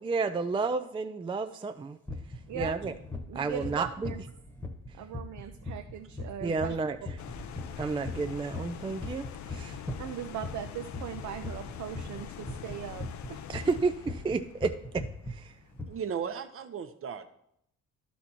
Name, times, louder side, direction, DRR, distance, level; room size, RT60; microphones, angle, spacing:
voice 1, 0.0-2.0 2.5-2.9 3.3-4.1 6.4-7.0 7.8-9.8 13.5-15.0 15.3-15.5, right 4 dB, 15° right, 9 dB, 0.4 m, -31 dB
sound 1, 2.1-14.4 14.6-15.3 15.7-15.9, left 2 dB, 5° left, 1.2 m, -39 dB
voice 2, 2.5-3.0 3.3-4.2 5.0-6.8 10.0-13.0 13.3-13.4, right 10 dB, 75° right, 6 dB, 0.6 m, -39 dB
sound 2, 7.2-16.2, left 9 dB, 70° left, 0.6 m, -44 dB
voice 3, 15.9-17.3, right 7 dB, 45° right, 9 dB, 0.8 m, -36 dB
11.5 x 4.2 x 4.4 m, 0.75 s
cardioid pair, 90°, 30 cm